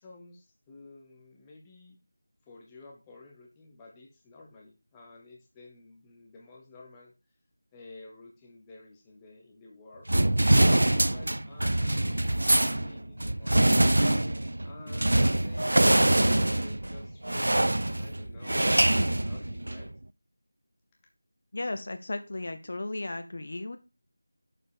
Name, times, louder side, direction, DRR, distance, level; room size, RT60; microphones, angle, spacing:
voice 1, 0.0-2.0 2.5-7.1 7.7-10.1 10.5-13.8 14.6-19.9, left 2 dB, 5° left, -1 dB, 0.8 m, -51 dB
sound 1, 10.1-19.9, right 1 dB, 75° right, 0.4 m, -24 dB
voice 2, 21.5-23.8, left 2 dB, 40° left, 9 dB, 0.6 m, -35 dB
6.8 x 5.4 x 4.8 m, 0.30 s
figure-of-eight pair, 175°, 0 cm